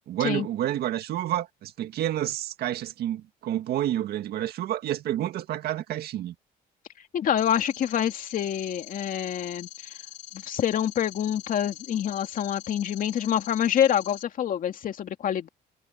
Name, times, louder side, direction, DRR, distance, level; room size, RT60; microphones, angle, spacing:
voice 1, 0.1-6.3, right 12 dB, 70° right, 1.8 m, -29 dB
voice 2, 7.1-9.9 10.3-15.5, left 9 dB, 55° left, 2.4 m, -26 dB
sound 1, 7.4-14.2, left 14 dB, 75° left, 4.6 m, -44 dB
cardioid pair, 110°, 17 cm